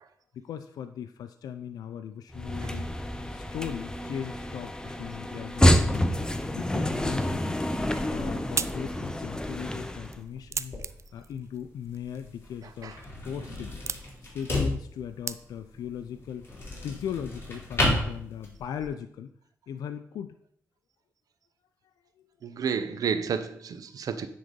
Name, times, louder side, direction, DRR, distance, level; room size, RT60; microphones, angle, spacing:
voice 1, 0.3-2.9 3.3-6.1 6.5-7.4 8.1-10.8 11.1-13.0 13.2-13.7 14.2-16.5 16.8-19.3 19.7-20.3, left 8 dB, 85° left, 9 dB, 0.4 m, -38 dB
sound 1, 2.3-10.2, equal, 10° left, 0.7 m, -28 dB
sound 2, 7.9-15.9, right 6 dB, 50° right, 0.4 m, -40 dB
sound 3, 10.1-18.9, left 1 dB, 40° left, 3.3 m, -33 dB
voice 2, 22.4-24.3, right 6 dB, 70° right, 10 dB, 0.7 m, -31 dB
9.7 x 3.9 x 5.2 m, 0.66 s
cardioid pair, 70°, 6 cm